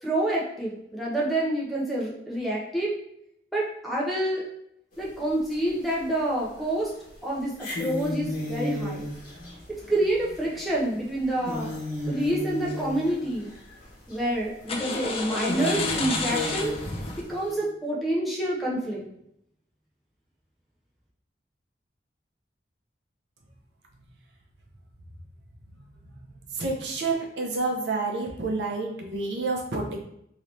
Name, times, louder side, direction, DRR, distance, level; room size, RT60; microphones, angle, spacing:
voice 1, 0.0-2.9 3.5-4.4 5.0-6.9 7.2-9.1 9.7-11.7 12.1-13.5 14.1-16.8 17.3-19.1, right 1 dB, ahead, -6 dB, 0.7 m, -28 dB
sound 1, 4.9-5.0 5.5-6.2 6.6-6.7 7.5-13.8 14.1-14.2 14.9-15.0 15.5-17.5, left 1 dB, 50° left, 1.2 m, -33 dB
sound 2, 9.0-10.4 11.6-11.9 12.3-12.8 13.1-13.7 14.7-17.2, left 3 dB, 35° left, 0.4 m, -32 dB
voice 2, 26.6-30.0, right 3 dB, 70° right, 0 dB, 0.7 m, -29 dB
2.9 x 2.7 x 3.2 m, 0.74 s
head